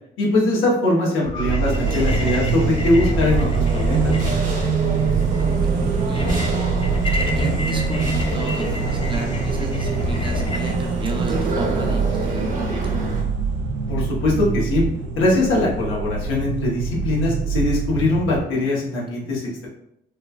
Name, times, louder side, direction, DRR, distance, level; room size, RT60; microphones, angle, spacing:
voice 1, 0.2-4.1 13.9-14.8 15.2-19.7, left 2 dB, 90° left, -3 dB, 0.9 m, -21 dB
sound 1, 1.2-10.7, left 2 dB, 30° left, 0.4 m, -28 dB
sound 2, 1.3-18.4, right 5 dB, 75° right, 0.4 m, -24 dB
sound 3, 1.7-13.2, right 2 dB, 45° right, 0.9 m, -28 dB
voice 2, 5.7-6.3 7.3-12.9 18.5-19.3, right 3 dB, 25° right, 0 dB, 0.6 m, -33 dB
3.1 x 2.1 x 2.3 m, 0.75 s
cardioid pair, 90°, 20 cm